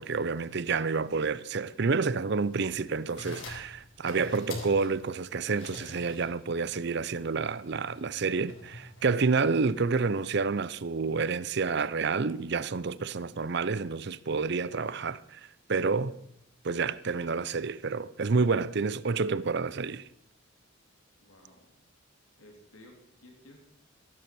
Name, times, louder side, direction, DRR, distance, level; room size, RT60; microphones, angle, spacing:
voice 1, 0.0-15.4 15.7-16.2 16.6-20.0, right 4 dB, 55° right, 0.6 m, -29 dB
sound 1, 3.0-9.8, left 2 dB, 70° left, 4.7 m, -46 dB
voice 2, 21.2-21.8 22.4-23.6, left 1 dB, 85° left, 3.5 m, -55 dB
14.5 x 12.0 x 6.1 m
head